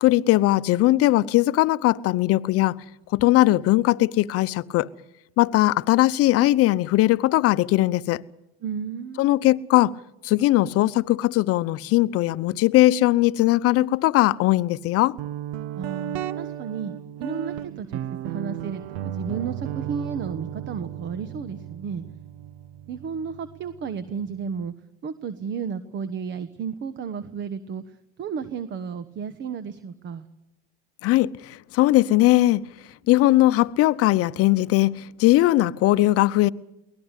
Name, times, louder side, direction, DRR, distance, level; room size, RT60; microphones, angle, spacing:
voice 1, 0.0-2.8 3.1-4.9 5.4-8.2 9.2-9.9 10.2-15.2 31.0-32.6 33.1-36.5, left 17 dB, 50° left, 0.8 m, -19 dB
voice 2, 8.6-9.3 15.7-16.9 17.2-22.0 22.9-24.7 25.0-30.3, right 6 dB, 40° right, 1.3 m, -33 dB
Guitar, 15.2-24.7, right 11 dB, 70° right, 1.2 m, -35 dB
23.0 x 18.5 x 8.3 m
supercardioid pair, 105°, 31 cm